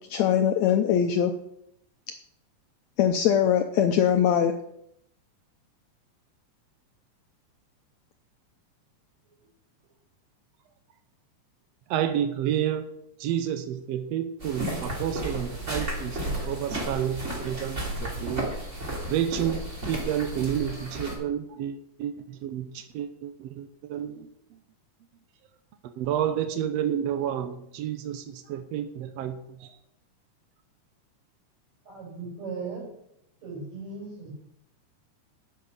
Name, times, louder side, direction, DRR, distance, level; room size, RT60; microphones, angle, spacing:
voice 1, 0.1-1.3 3.0-4.5, left 9 dB, 75° left, 6 dB, 1.7 m, -22 dB
voice 2, 11.9-12.9 13.2-18.5 19.1-24.6 26.0-29.8, right 10 dB, 80° right, 8 dB, 1.5 m, -30 dB
sound 1, 14.4-21.2, right 1 dB, 20° right, 2.9 m, -33 dB
voice 3, 31.9-32.8 33.4-34.3, right 4 dB, 55° right, -3 dB, 7.5 m, -37 dB
11.5 x 9.0 x 5.5 m, 0.77 s
omnidirectional pair, 3.8 m